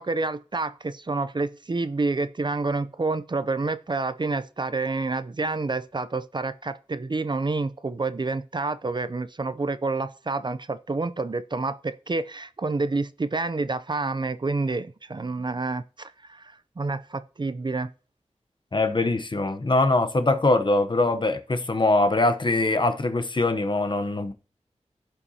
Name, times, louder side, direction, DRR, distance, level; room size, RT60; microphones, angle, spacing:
voice 1, 0.0-17.9, right 3 dB, 40° right, 0.5 m, -28 dB
voice 2, 18.7-24.3, left 2 dB, 40° left, 0.8 m, -22 dB
15.0 x 5.7 x 2.8 m
wide cardioid pair, 70°, 12 cm